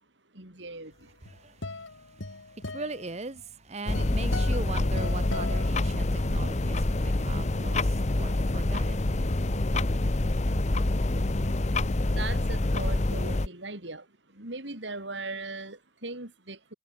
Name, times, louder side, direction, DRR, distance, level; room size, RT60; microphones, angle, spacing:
voice 1, 0.0-1.5 10.9-16.7, right 3 dB, 70° right, 5.4 m, -40 dB
sound 1, 1.0-6.4, left 2 dB, 85° left, 3.2 m, -39 dB
voice 2, 1.2-10.2, right 3 dB, 35° right, 1.0 m, -40 dB
sound 2, 3.9-13.5, left 2 dB, 35° left, 0.9 m, -26 dB
head